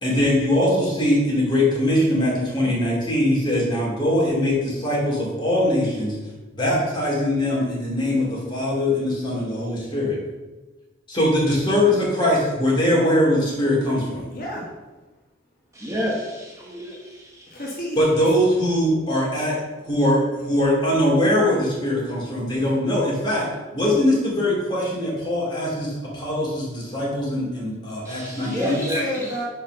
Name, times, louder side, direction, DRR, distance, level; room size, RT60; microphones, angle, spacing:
voice 1, 0.0-6.2 6.6-10.2 11.1-14.3 18.0-19.6 19.8-23.5 23.7-28.8, left 1 dB, 25° left, -5 dB, 2.5 m, -21 dB
voice 2, 14.3-14.8 17.5-18.2 28.3-29.4, equal, 45° left, -3 dB, 1.4 m, -31 dB
voice 3, 15.7-17.6 28.0-29.3, equal, 15° right, -4 dB, 1.2 m, -29 dB
5.7 x 4.9 x 5.5 m, 1.2 s
head